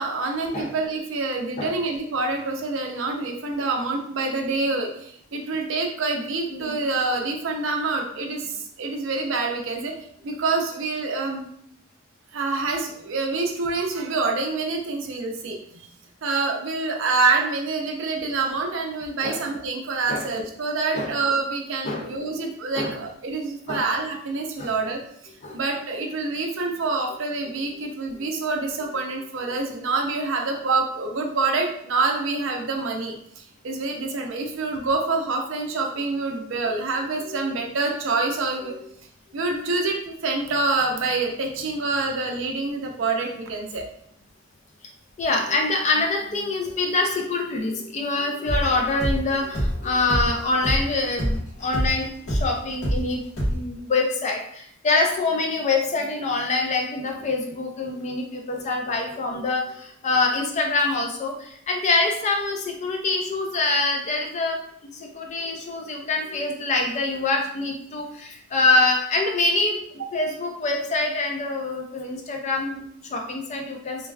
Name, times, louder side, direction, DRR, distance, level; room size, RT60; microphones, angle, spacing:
voice 1, 0.0-9.9 10.2-11.5 12.3-15.6 16.2-25.0 25.5-38.7 39.3-43.8, right 3 dB, 65° right, 2 dB, 0.5 m, -26 dB
voice 2, 6.5-6.8 19.2-19.4 20.1-20.3 20.9-21.2 21.8-22.1 22.8-23.0 23.7-23.8 24.6-24.7 25.4-25.6 28.2-28.3 37.2-37.5 38.7-38.9 45.2-69.8 70.1-74.1, left 3 dB, 35° left, 2 dB, 0.4 m, -25 dB
sound 1, 48.5-53.0 53.4-53.6, equal, 85° left, 1.3 m, -25 dB
3.2 x 2.3 x 2.3 m, 0.68 s
head